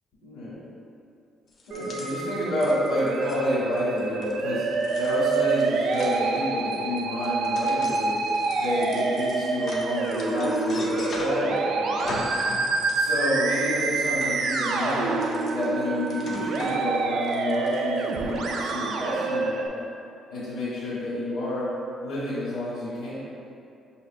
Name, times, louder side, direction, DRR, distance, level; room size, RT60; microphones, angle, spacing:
voice 1, 0.2-0.5 1.7-4.6 5.0-8.2 8.5-12.2 12.9-15.2 15.5-19.7 20.3-21.7 22.0-23.2, left 1 dB, 85° left, -12 dB, 1.5 m, -29 dB
sound 1, 1.5-11.6 11.9-19.1, left 2 dB, 45° left, 0.5 m, -41 dB
Musical instrument, 1.7-19.7, right 4 dB, 70° right, 0.3 m, -27 dB
6.1 x 2.8 x 2.4 m, 2.5 s
cardioid pair, 145°, 0 cm